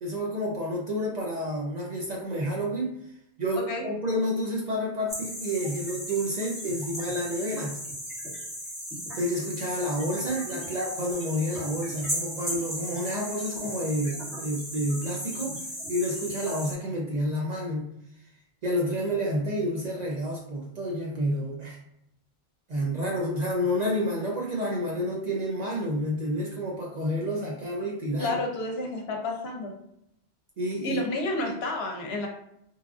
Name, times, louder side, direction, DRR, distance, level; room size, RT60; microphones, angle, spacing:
voice 1, 0.0-2.9 3.4-7.8 9.2-15.6 15.9-17.9 18.6-21.8 22.7-28.4 30.6-31.0, equal, 55° right, -2 dB, 0.5 m, -29 dB
sound 1, 5.1-16.7, equal, ahead, 0.7 m, -36 dB
voice 2, 28.2-29.7 30.8-32.3, left 2 dB, 75° left, 2 dB, 0.8 m, -30 dB
3.1 x 2.4 x 2.3 m, 0.78 s
omnidirectional pair, 1.1 m